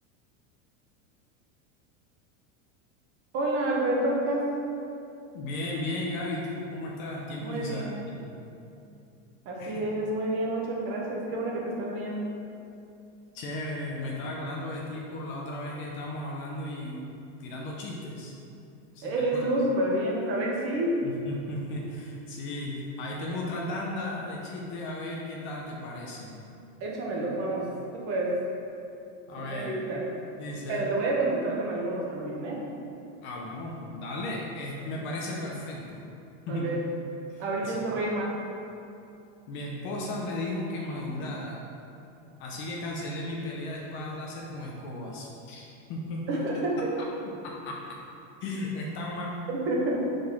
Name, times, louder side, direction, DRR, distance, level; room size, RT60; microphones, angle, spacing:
voice 1, 3.3-4.5 7.4-8.1 9.4-12.2 19.0-21.0 26.8-27.7 27.9-28.3 29.5-30.0 30.7-32.6 36.5-36.8 37.4-38.3 46.3-46.8 49.5-50.0, right 1 dB, 35° right, -2 dB, 1.1 m, -29 dB
voice 2, 5.3-8.4 9.6-9.9 13.3-17.1 17.4-18.3 18.9-19.5 21.0-26.4 29.3-29.8 30.4-30.9 33.2-36.0 36.5-36.7 37.3-37.8 39.5-41.6 42.4-46.6 47.4-48.0 48.4-49.3, left 1 dB, 30° left, -2 dB, 0.6 m, -35 dB
4.9 x 4.1 x 5.4 m, 2.7 s
supercardioid pair, 155°, 39 cm